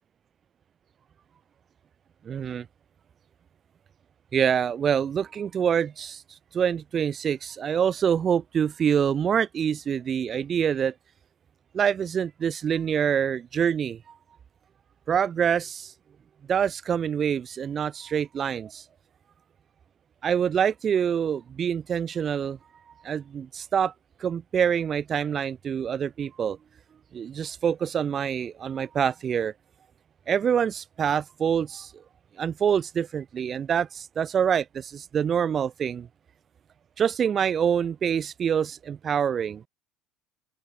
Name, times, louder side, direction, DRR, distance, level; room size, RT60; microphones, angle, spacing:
voice 1, 2.2-2.7 4.3-6.2 6.5-10.9 11.7-14.0 15.1-15.9 16.5-18.8 20.2-22.6 23.0-23.9 24.2-26.6 27.1-29.5 30.3-31.9 32.4-36.1 37.0-39.6, right 8 dB, 35° right, 1.7 m, -26 dB
open air
supercardioid pair, 110°, 0 cm